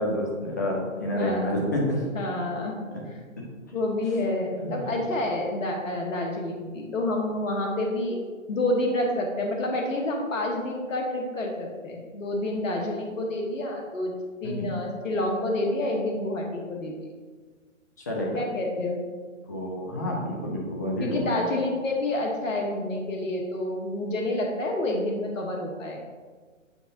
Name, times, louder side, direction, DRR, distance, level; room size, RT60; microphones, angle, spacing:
voice 1, 0.0-2.0 3.4-3.5 4.6-4.9 14.4-14.7 18.1-18.4 19.5-21.5, left 1 dB, 15° left, -2 dB, 0.4 m, -29 dB
voice 2, 1.1-1.6 2.1-2.7 3.0-3.2 3.7-8.2 8.5-14.1 14.4-16.9 18.3-19.0 21.0-26.0, left 1 dB, 75° left, 0 dB, 1.3 m, -28 dB
7.7 x 4.6 x 2.7 m, 1.5 s
figure-of-eight pair, 135°, 40 cm